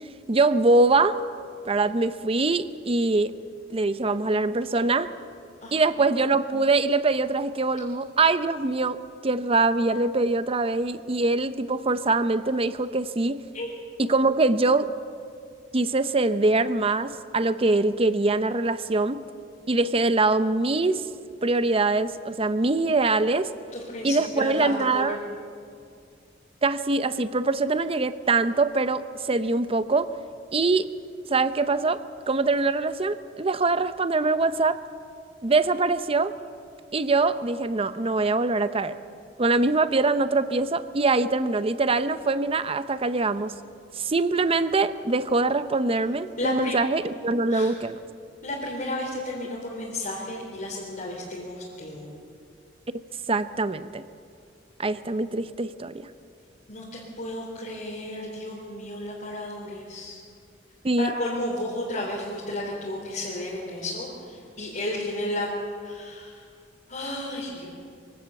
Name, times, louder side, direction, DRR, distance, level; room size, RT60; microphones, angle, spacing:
voice 1, 0.3-1.2 1.7-3.3 3.7-5.1 5.7-13.4 14.0-14.9 15.7-19.2 19.7-21.0 21.4-23.5 24.0-25.2 26.6-30.1 30.5-30.9 31.3-32.0 32.3-34.8 35.4-36.3 36.9-39.0 39.4-43.5 44.0-48.0 53.3-54.0 54.8-56.1 60.8-61.1, right 3 dB, 30° right, 13 dB, 0.7 m, -23 dB
voice 2, 5.6-6.0 13.5-13.7 23.7-25.2 46.4-46.8 47.5-47.7 48.4-52.1 56.7-60.2 61.0-65.5 65.8-66.5 66.9-67.7, left 1 dB, 45° left, -6 dB, 3.6 m, -33 dB
23.5 x 16.5 x 7.1 m, 2.3 s
head